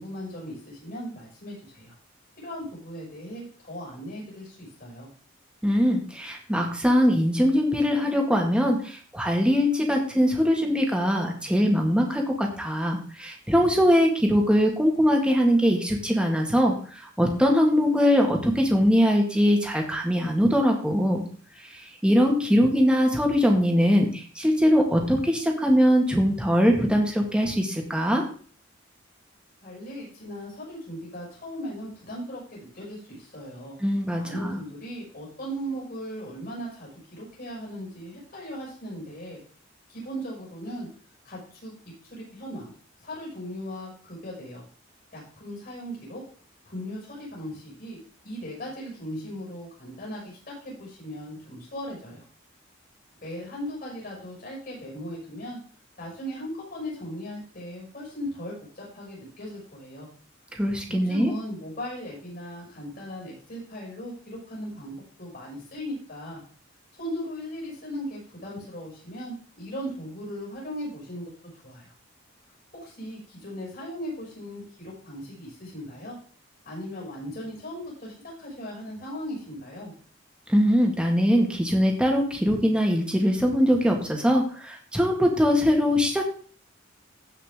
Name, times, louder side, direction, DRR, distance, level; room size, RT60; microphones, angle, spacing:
voice 1, 0.0-1.9 2.4-5.1 29.6-33.8 34.2-39.4 39.9-40.9 41.2-41.8 42.0-42.7 43.0-44.6 45.1-46.2 46.6-48.0 48.2-52.2 53.2-55.6 56.0-60.1 60.9-66.4 66.9-71.3 71.6-71.9 72.8-76.2 76.6-79.9, equal, 50° left, -3 dB, 6.2 m, -38 dB
voice 2, 5.6-16.7 17.2-21.2 22.0-28.2 33.8-34.6 60.5-61.3 80.5-86.3, equal, 5° right, 1 dB, 1.8 m, -22 dB
16.0 x 5.5 x 3.7 m, 0.43 s
head